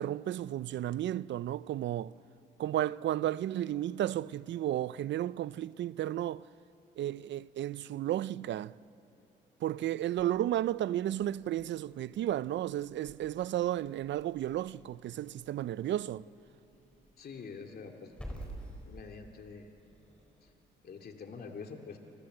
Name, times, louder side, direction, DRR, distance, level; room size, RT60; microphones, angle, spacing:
voice 1, 0.0-2.1 2.6-6.4 7.0-8.7 9.6-16.2, right 12 dB, 65° right, 0.5 m, -33 dB
Growling / Hiss, 11.5-20.5, right 1 dB, 5° left, 5.6 m, -52 dB
voice 2, 17.2-18.1 18.9-19.7 20.4-20.5 20.8-22.0, left 5 dB, 50° left, 2.5 m, -46 dB
29.5 x 25.5 x 7.9 m
cardioid pair, 90°, 20 cm